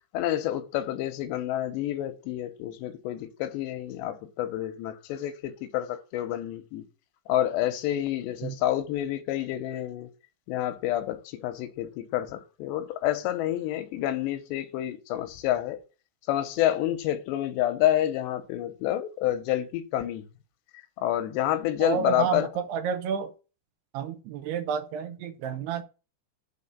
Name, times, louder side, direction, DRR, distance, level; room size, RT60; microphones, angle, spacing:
voice 1, 0.1-6.8 7.3-10.1 10.5-15.8 16.3-20.2 21.0-22.5, left 12 dB, 85° left, 2.9 m, -28 dB
voice 2, 21.8-23.3 23.9-25.8, right 7 dB, 80° right, 2.8 m, -30 dB
8.7 x 4.2 x 7.0 m
omnidirectional pair, 5.1 m